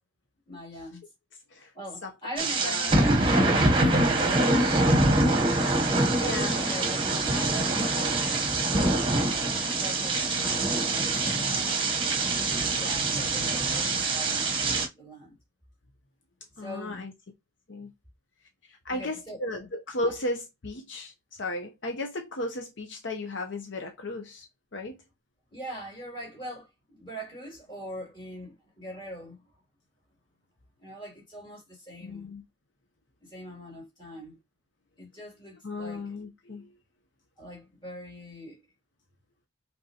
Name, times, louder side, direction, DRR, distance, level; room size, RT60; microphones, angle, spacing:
voice 1, 0.5-1.0 1.7-5.4 5.6-8.5 9.3-11.8 12.4-15.4 16.6-17.0 18.9-19.5 20.0-20.1 25.5-29.4 30.8-32.3 33.2-34.4 35.0-36.1 37.4-38.6, equal, 25° left, 2.8 m, -42 dB
sound 1, 2.4-14.9, right 2 dB, 25° right, 0.9 m, -24 dB
voice 2, 2.6-3.0 6.2-6.5 16.6-17.1 17.7-17.9 18.8-21.1 21.4-24.5 24.7-25.0 32.0-32.4 35.6-36.6, left 2 dB, 70° left, 0.8 m, -34 dB
5.3 x 3.5 x 2.9 m
head